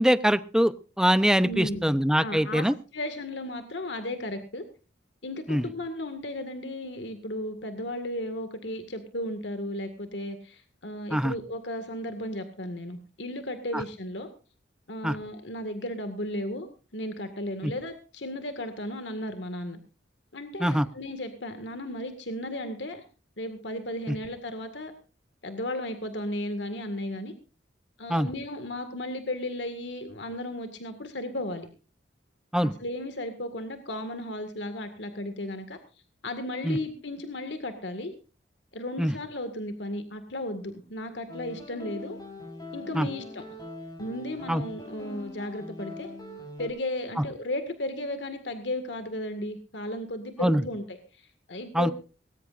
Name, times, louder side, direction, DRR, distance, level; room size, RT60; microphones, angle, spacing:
voice 1, 0.0-2.7 5.5-5.6 11.1-11.3 13.7-13.8 15.0-15.2 17.6-17.7 20.6-20.9 24.1-24.2 28.1-28.3 32.5-32.7 36.6-36.8 39.0-39.1 42.9-43.1 44.5-44.6 50.4-50.6 51.7-51.9, equal, 5° right, 14 dB, 0.7 m, -23 dB
voice 2, 1.4-1.9 2.2-4.6 5.2-14.3 14.9-16.7 16.9-19.8 20.3-23.0 23.4-24.9 25.4-27.3 28.0-31.7 32.6-35.8 36.2-38.1 38.7-42.2 42.7-43.4 44.0-46.1 46.6-51.9, left 1 dB, 75° left, 8 dB, 1.9 m, -35 dB
sound 1, 41.3-46.7, left 2 dB, 20° left, 6.6 m, -42 dB
20.0 x 18.0 x 2.5 m, 0.34 s
head